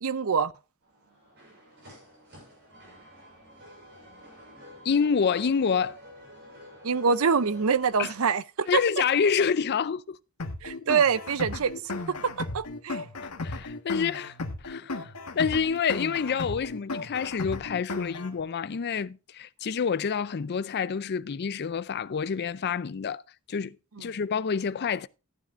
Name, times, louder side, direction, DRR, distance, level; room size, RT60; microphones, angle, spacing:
voice 1, 0.0-0.5 6.8-8.8 10.6-11.7 12.2-13.0, right 6 dB, 65° right, 0.6 m, -25 dB
sound 1, 0.8-8.2, equal, 50° right, 6.5 m, -49 dB
voice 2, 4.8-6.0 8.0-8.1 8.7-10.2 13.4-14.4 14.6-23.2 23.5-25.1, left 6 dB, 50° left, 0.4 m, -28 dB
sound 2, 10.4-18.4, left 2 dB, 85° left, 1.4 m, -35 dB
14.5 x 9.7 x 2.5 m
head